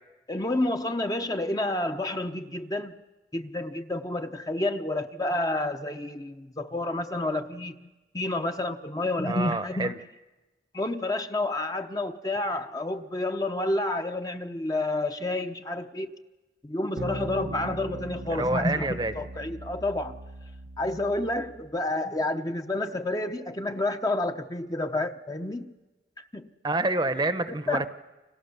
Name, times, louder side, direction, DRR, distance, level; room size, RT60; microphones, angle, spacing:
voice 1, 0.3-3.0 3.3-9.9 10.7-16.2 16.6-20.2 20.8-25.7 26.2-26.4 27.5-27.9, left 2 dB, 20° left, 0.8 m, -29 dB
voice 2, 9.3-10.0 18.3-19.1 26.6-27.8, right 2 dB, 25° right, 0.9 m, -27 dB
sound 1, 17.0-21.7, right 2 dB, 75° right, 1.0 m, -40 dB
29.5 x 26.5 x 7.0 m
head